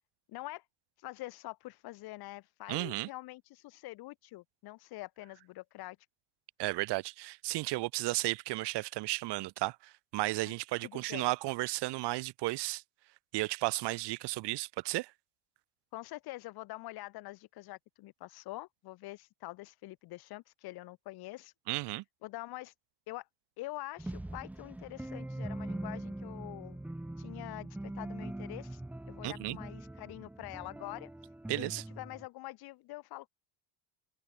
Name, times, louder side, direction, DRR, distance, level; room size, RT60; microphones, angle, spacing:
voice 1, 0.3-0.7 1.0-6.0 10.4-10.5 10.8-11.3 15.9-21.5 22.2-22.7 23.1-23.3 23.6-26.8 27.2-28.8 29.1-31.1 31.5-33.3, left 19 dB, 50° left, 1.2 m, -45 dB
voice 2, 2.7-3.1 6.6-12.8 13.3-15.1 21.7-22.0 29.2-29.6 31.5-31.8, right 20 dB, 55° right, 1.5 m, -34 dB
sound 1, 24.0-32.3, right 1 dB, 5° right, 0.8 m, -42 dB
cardioid pair, 155°, 49 cm